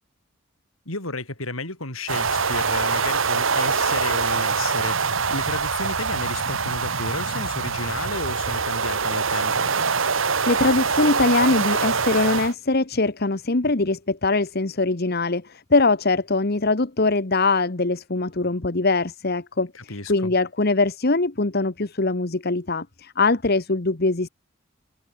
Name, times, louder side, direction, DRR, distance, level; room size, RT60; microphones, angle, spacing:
voice 1, 0.9-9.7 19.7-20.3, left 2 dB, 85° left, 7.3 m, -32 dB
sound 1, 2.1-12.5, right 5 dB, 70° right, 1.8 m, -24 dB
voice 2, 10.5-19.7 20.1-24.3, left 3 dB, 50° left, 1.3 m, -22 dB
head